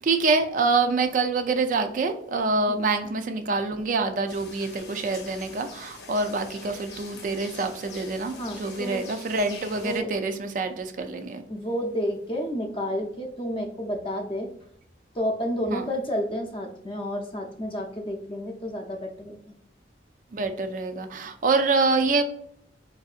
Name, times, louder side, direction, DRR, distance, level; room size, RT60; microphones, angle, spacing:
voice 1, 0.0-11.4 15.7-15.8 20.3-22.2, right 3 dB, 45° right, 7 dB, 0.3 m, -26 dB
sound 1, 4.3-10.0, left 4 dB, 65° left, 0.8 m, -44 dB
voice 2, 8.4-9.0 9.6-10.1 11.5-14.5 15.1-19.4, equal, 30° left, 3 dB, 0.6 m, -30 dB
4.6 x 2.6 x 2.4 m, 0.70 s
head